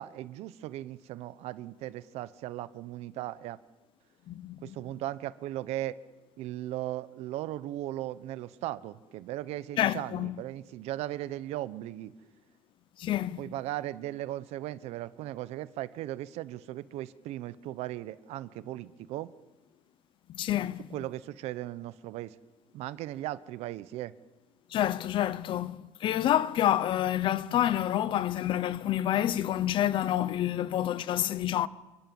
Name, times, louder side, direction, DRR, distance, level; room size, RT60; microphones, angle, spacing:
voice 1, 0.0-3.6 4.6-6.0 6.4-12.1 13.4-19.3 20.9-22.3 22.7-24.1, right 14 dB, 75° right, 1.0 m, -37 dB
voice 2, 4.3-4.8 9.8-10.4 13.0-13.4 20.3-20.9 24.7-31.7, left 12 dB, 50° left, 0.9 m, -28 dB
28.5 x 25.0 x 7.2 m
cardioid pair, 170°, 11 cm